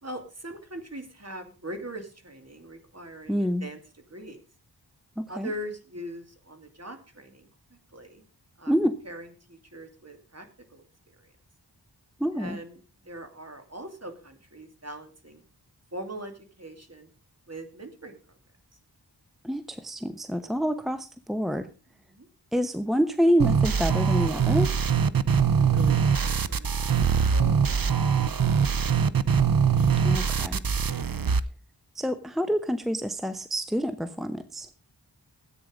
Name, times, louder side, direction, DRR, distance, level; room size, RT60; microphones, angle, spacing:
voice 1, 0.0-3.8 4.1-4.4 5.3-8.2 8.6-8.7 9.0-11.3 12.4-15.4 15.9-17.1 17.5-18.4 22.1-22.3 25.6-29.2, right 1 dB, 35° right, 6 dB, 2.7 m, -42 dB
voice 2, 3.3-3.7 5.2-5.5 8.7-8.9 12.2-12.6 19.4-21.7 22.5-24.7 30.0-30.6 31.9-34.7, equal, ahead, 10 dB, 0.9 m, -27 dB
sound 1, 23.4-31.4, right 6 dB, 55° right, 0.7 m, -23 dB
14.0 x 8.8 x 5.2 m, 0.35 s
wide cardioid pair, 50°, 42 cm